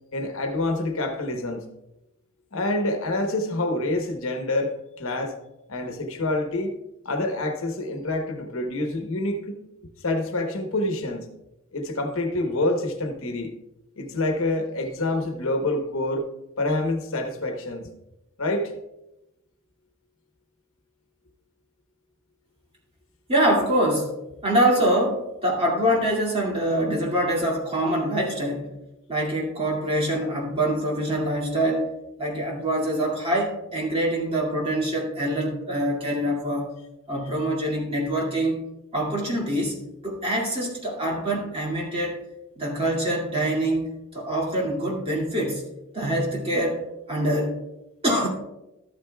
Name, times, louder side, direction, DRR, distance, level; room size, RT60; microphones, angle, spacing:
voice 1, 0.1-1.7 2.5-5.4 5.7-6.7 7.0-9.6 10.0-11.3 11.7-13.5 14.0-16.3 16.6-17.9 18.4-18.7, left 2 dB, 65° left, 5 dB, 1.0 m, -27 dB
voice 2, 23.3-24.1 24.4-28.7 29.1-31.9 32.2-36.7 37.1-38.6 38.9-39.8 40.0-42.2 42.6-45.6 45.9-46.8 47.1-47.6 48.0-48.3, right 1 dB, 25° right, -3 dB, 2.2 m, -24 dB
13.0 x 8.8 x 2.3 m, 0.91 s
head